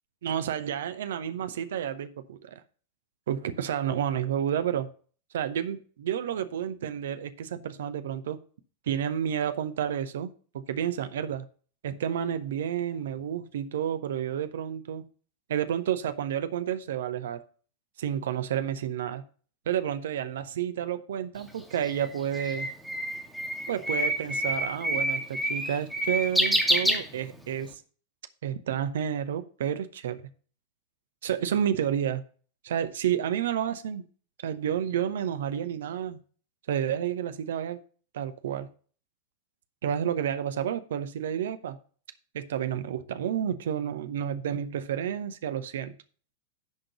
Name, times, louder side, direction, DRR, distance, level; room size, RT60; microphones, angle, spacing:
voice 1, 0.2-2.6 3.3-4.9 5.3-8.4 8.9-11.5 11.8-15.0 15.5-17.4 18.0-19.2 19.7-22.7 23.7-25.2 25.5-27.8 28.4-30.2 31.2-32.2 32.6-34.1 34.4-36.2 36.7-37.8 38.1-38.7 39.8-41.8 42.3-45.9, right 9 dB, 60° right, 0.8 m, -30 dB
Bird, 21.4-27.6, equal, ahead, 1.5 m, -28 dB
10.5 x 3.8 x 6.6 m
figure-of-eight pair, 90°, 0 cm